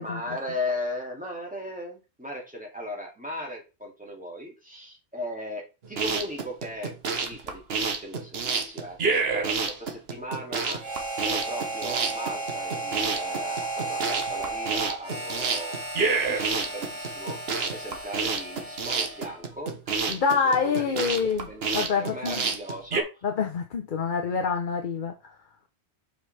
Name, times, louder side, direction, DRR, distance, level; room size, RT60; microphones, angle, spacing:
voice 1, 0.0-10.8 11.2-15.8 16.3-17.4 17.7-19.7 20.4-23.2, left 1 dB, 5° right, 2.2 m, -37 dB
sound 1, 5.8-23.0, right 4 dB, 60° right, 1.2 m, -29 dB
Harmonica, 10.8-19.4, right 2 dB, 30° right, 2.1 m, -34 dB
voice 2, 20.1-21.5 21.7-22.4 23.2-25.3, left 5 dB, 50° left, 0.9 m, -26 dB
6.9 x 5.3 x 3.3 m
omnidirectional pair, 1.2 m